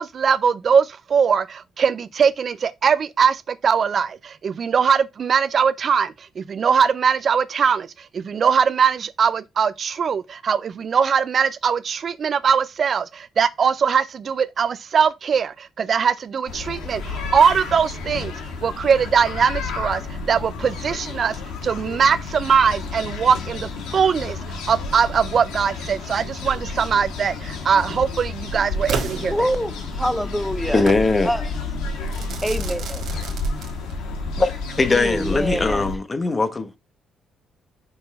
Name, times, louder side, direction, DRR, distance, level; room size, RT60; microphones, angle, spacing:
voice 1, 0.0-18.3 18.6-21.4 21.6-29.3, right 6 dB, 50° right, 0.4 m, -21 dB
sound 1, 16.5-36.0, left 3 dB, 90° left, 1.5 m, -31 dB
Crackle / Fireworks, 28.9-30.0 30.9-31.1 32.1-34.1, right 6 dB, 70° right, 1.6 m, -32 dB
voice 2, 29.3-30.8 31.3-31.4 32.0-32.1 32.4-33.2 34.9-36.0, equal, 5° left, 0.6 m, -26 dB
voice 3, 30.7-31.3 34.4-34.5 34.8-36.8, left 3 dB, 25° left, 1.0 m, -20 dB
5.6 x 4.4 x 4.0 m
cardioid pair, 90°, 0 cm